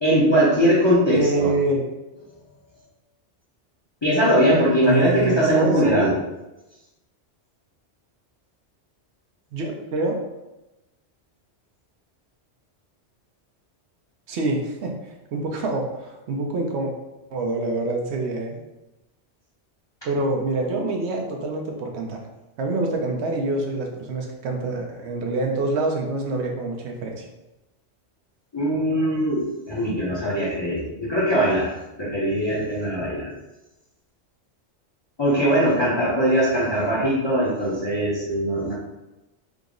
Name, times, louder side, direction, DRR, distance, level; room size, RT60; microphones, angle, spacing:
voice 1, 0.0-1.5 4.0-6.1 28.5-33.3 35.2-38.7, equal, 30° left, -7 dB, 0.6 m, -21 dB
voice 2, 1.1-1.9 4.8-6.2 9.5-10.2 14.3-14.9 15.3-16.9 17.3-18.6 20.0-22.2 22.6-27.2, right 2 dB, 75° right, 1 dB, 0.9 m, -26 dB
3.6 x 2.0 x 3.6 m, 0.98 s
omnidirectional pair, 1.2 m